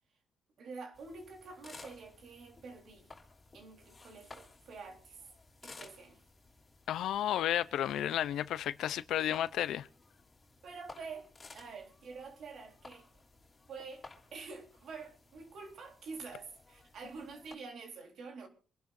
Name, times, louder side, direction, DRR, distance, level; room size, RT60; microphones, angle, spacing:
voice 1, 0.6-3.1 3.5-5.2 5.6-6.2 10.6-13.1 13.7-18.5, right 4 dB, 65° right, 3.8 m, -47 dB
sound 1, 0.9-17.6, left 3 dB, 25° left, 3.0 m, -57 dB
voice 2, 6.9-9.9, left 11 dB, 80° left, 0.6 m, -32 dB
26.5 x 11.5 x 2.6 m
cardioid pair, 90°, 0 cm